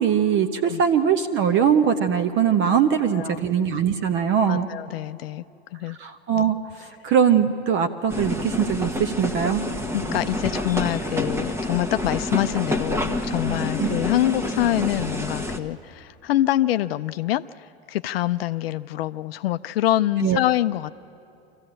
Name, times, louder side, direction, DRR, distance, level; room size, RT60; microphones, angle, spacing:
voice 1, 0.0-4.7 6.0-9.7 13.8-13.9 20.2-20.4, right 8 dB, 40° right, 6 dB, 1.0 m, -21 dB
voice 2, 4.5-5.4 5.7-6.0 9.9-20.9, left 14 dB, 70° left, 12 dB, 0.5 m, -25 dB
sound 1, 8.1-15.6, left 1 dB, 10° right, 1.2 m, -28 dB
24.0 x 15.0 x 8.8 m, 2.7 s
hypercardioid pair, 95°, 31 cm